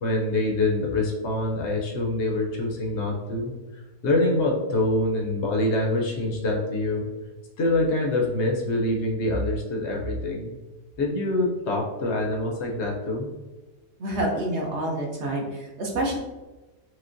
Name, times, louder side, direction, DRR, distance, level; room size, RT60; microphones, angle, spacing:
voice 1, 0.0-3.5 4.0-7.1 7.6-10.6 11.0-13.3, left 2 dB, 60° left, 0 dB, 0.8 m, -25 dB
voice 2, 14.0-16.2, right 1 dB, 60° right, -1 dB, 0.8 m, -28 dB
6.2 x 2.1 x 2.5 m, 1.1 s
omnidirectional pair, 1.7 m